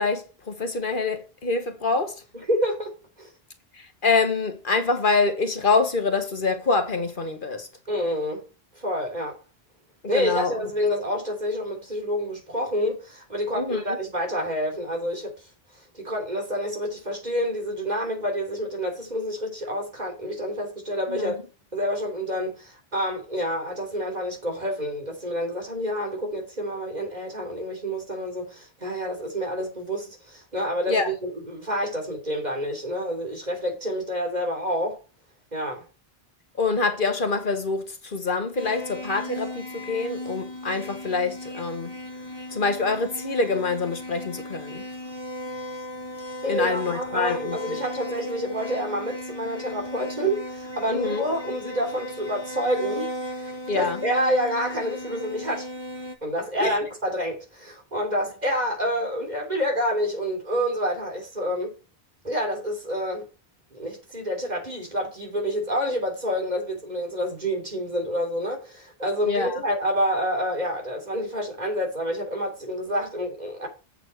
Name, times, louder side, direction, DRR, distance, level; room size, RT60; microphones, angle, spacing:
voice 1, 0.0-2.2 3.7-7.7 10.1-10.6 13.5-14.0 21.1-21.3 30.9-31.1 36.6-42.0 42.5-44.8 46.5-47.8 50.9-51.2 53.7-54.0 56.6-56.7 69.2-69.6, left 4 dB, 55° left, 1.3 m, -25 dB
voice 2, 2.3-3.3 7.9-8.4 8.8-9.4 10.1-15.3 15.9-21.4 21.7-35.0 35.5-35.8 46.4-55.7 56.2-61.7 62.2-63.3 63.7-73.7, equal, 45° right, 3.4 m, -28 dB
sound 1, 38.6-56.2, left 1 dB, 65° right, 1.8 m, -36 dB
8.2 x 6.8 x 4.6 m
omnidirectional pair, 1.0 m